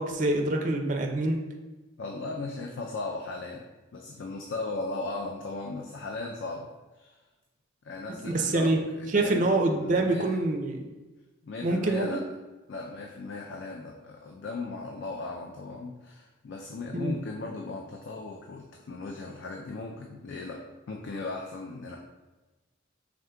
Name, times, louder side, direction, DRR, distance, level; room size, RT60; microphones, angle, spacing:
voice 1, 0.0-1.4 8.2-8.8 9.1-10.8 11.6-12.2 16.9-17.1, right 2 dB, 40° right, 3 dB, 0.4 m, -25 dB
voice 2, 2.0-3.6 3.9-6.7 7.0-7.2 7.8-10.4 11.4-12.2 12.7-20.6 20.9-22.0, left 3 dB, 65° left, 0 dB, 0.4 m, -37 dB
4.9 x 3.6 x 2.2 m, 1.2 s
head